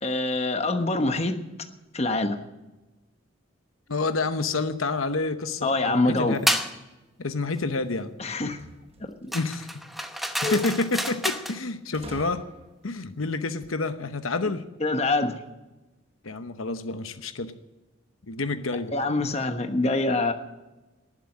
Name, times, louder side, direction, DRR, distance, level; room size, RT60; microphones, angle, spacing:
voice 1, 0.0-1.4 1.9-2.4 5.6-6.4 8.2-8.6 9.2-9.3 10.4-10.6 14.8-15.4 18.9-20.3, left 2 dB, 30° left, 6 dB, 1.2 m, -25 dB
voice 2, 3.9-6.4 7.2-8.1 9.3-9.8 10.4-12.4 12.8-14.6 16.2-17.5 18.3-18.9, left 3 dB, 85° left, 9 dB, 1.0 m, -28 dB
sound 1, 6.5-6.7 9.3-11.6, equal, ahead, 0.9 m, -29 dB
sound 2, 8.5-9.5 11.9-13.0, right 1 dB, 30° right, 1.2 m, -45 dB
19.0 x 7.7 x 8.8 m, 1.1 s
head